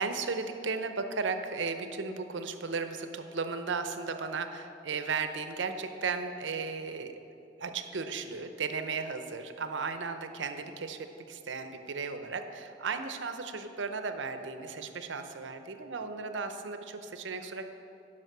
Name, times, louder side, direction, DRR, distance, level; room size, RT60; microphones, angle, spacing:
voice 1, 0.0-7.2 7.6-17.7, right 4 dB, 80° right, 8 dB, 0.7 m, -35 dB
11.0 x 5.5 x 6.6 m, 2.8 s
head